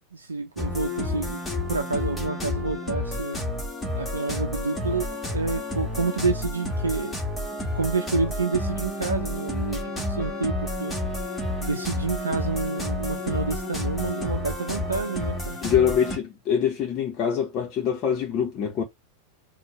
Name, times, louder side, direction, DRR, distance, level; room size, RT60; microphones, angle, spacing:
voice 1, 0.1-1.4 1.7-3.4 3.9-7.5 7.7-11.0 11.6-15.6, right 4 dB, 75° right, 0.6 m, -29 dB
sound 1, 0.6-16.2, left 1 dB, 10° left, 1.6 m, -30 dB
voice 2, 15.6-18.8, left 8 dB, 35° left, 1.0 m, -24 dB
4.4 x 2.4 x 3.1 m
figure-of-eight pair, 90°, 0 cm